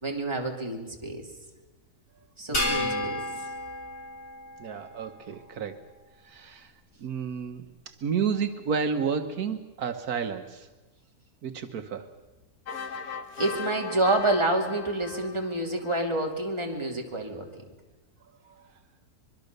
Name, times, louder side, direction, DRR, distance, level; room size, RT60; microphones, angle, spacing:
voice 1, 0.0-1.2 2.4-3.4 13.4-17.5, right 2 dB, 20° right, 1 dB, 2.7 m, -28 dB
sound 1, 2.5-5.1, left 2 dB, 45° left, 4.4 m, -31 dB
voice 2, 2.5-3.2 4.6-5.8 6.2-6.7 7.0-10.7 11.4-12.1 18.4-18.7, right 6 dB, 75° right, 7 dB, 1.6 m, -32 dB
sound 2, 12.7-16.1, left 6 dB, 75° left, 1.8 m, -38 dB
24.0 x 22.5 x 6.7 m, 1.2 s
omnidirectional pair, 1.6 m